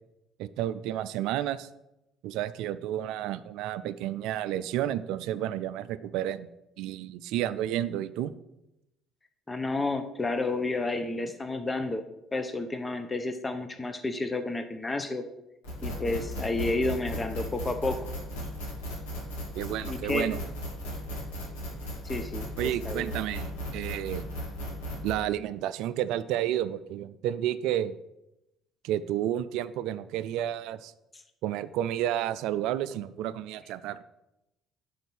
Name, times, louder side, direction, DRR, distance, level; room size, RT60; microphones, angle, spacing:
voice 1, 0.4-1.7 2.2-6.5 6.8-8.3 19.6-20.4 22.6-24.2 25.0-28.0 28.8-30.9 31.4-34.0, right 12 dB, 65° right, 14 dB, 0.3 m, -31 dB
voice 2, 9.5-12.0 12.3-15.2 15.8-18.1 19.8-20.3 22.0-23.1, left 2 dB, 20° left, 9 dB, 0.7 m, -31 dB
sound 1, 15.6-25.1, equal, 80° left, 2.2 m, -36 dB
5.2 x 5.0 x 6.0 m, 0.90 s
hypercardioid pair, 55°, 0 cm